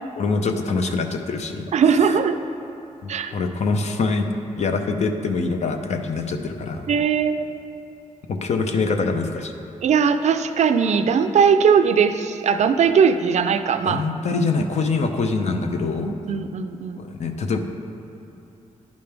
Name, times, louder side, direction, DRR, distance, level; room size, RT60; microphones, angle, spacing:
voice 1, 0.2-1.7 3.0-4.3 4.6-6.9 8.3-9.5 13.8-16.1 17.0-17.6, left 4 dB, 60° left, 5 dB, 0.6 m, -24 dB
voice 2, 1.7-2.4 3.1-3.3 6.9-7.6 9.8-14.0 14.6-14.7 16.0-17.0, right 6 dB, 60° right, 9 dB, 0.4 m, -19 dB
10.5 x 5.2 x 3.4 m, 2.9 s
cardioid pair, 75°, 13 cm